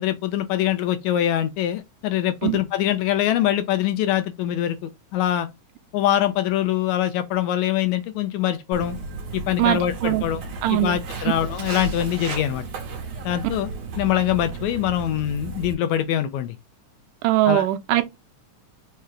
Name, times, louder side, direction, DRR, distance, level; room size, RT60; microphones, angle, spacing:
voice 1, 0.0-5.5 5.9-9.0 9.3-10.4 10.7-12.6 13.2-13.7 14.0-16.6 17.5-17.7, left 11 dB, 80° left, 1.9 m, -23 dB
Walk footsteps, 8.7-15.7, right 4 dB, 60° right, 2.2 m, -34 dB
voice 2, 9.6-10.2 10.6-11.0 17.2-18.0, right 15 dB, 90° right, 2.1 m, -21 dB
5.5 x 2.4 x 3.2 m
omnidirectional pair, 3.5 m